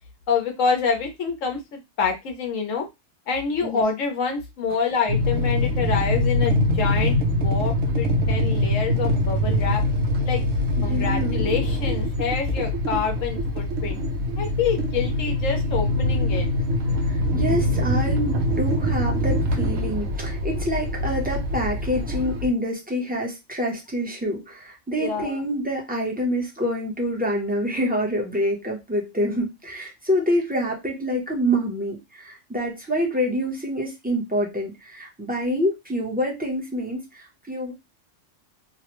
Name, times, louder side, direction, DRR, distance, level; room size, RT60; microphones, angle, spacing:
voice 1, 0.3-2.9 3.3-7.2 7.4-9.8 10.2-10.4 10.8-14.0 14.4-16.5 25.0-25.4, left 5 dB, 90° left, 3 dB, 1.1 m, -27 dB
sound 1, 5.1-22.5, left 1 dB, 80° right, 1.0 m, -23 dB
voice 2, 10.8-11.4 17.1-37.7, equal, 10° right, -2 dB, 0.6 m, -27 dB
3.1 x 2.1 x 3.0 m, 0.22 s
omnidirectional pair, 1.3 m